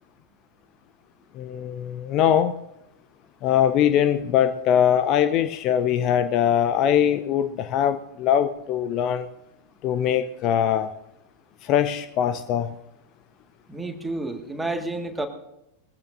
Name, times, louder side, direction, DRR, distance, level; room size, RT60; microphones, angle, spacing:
voice 1, 1.3-2.5 3.4-9.3 9.8-10.9 11.6-12.8, left 9 dB, 40° left, 11 dB, 0.6 m, -22 dB
voice 2, 13.7-15.3, right 2 dB, 5° right, 6 dB, 1.7 m, -30 dB
21.0 x 15.0 x 2.6 m, 0.86 s
figure-of-eight pair, 90°, 0 cm